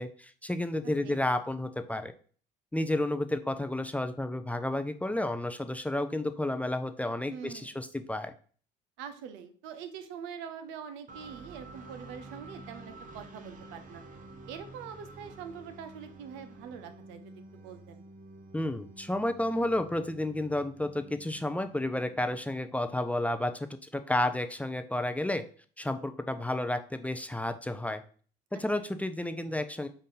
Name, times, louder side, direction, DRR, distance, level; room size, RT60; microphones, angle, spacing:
voice 1, 0.0-2.1 2.7-8.3 18.5-25.4 25.8-28.0 28.5-29.9, left 1 dB, 5° left, 8 dB, 0.5 m, -31 dB
voice 2, 0.8-1.2 7.3-7.8 9.0-14.0 14.5-18.0 28.5-28.6, right 7 dB, 75° right, 9 dB, 0.7 m, -44 dB
sound 1, 11.1-22.9, right 2 dB, 45° right, 0.9 m, -50 dB
5.6 x 2.6 x 3.7 m, 0.43 s
hypercardioid pair, 65°, 19 cm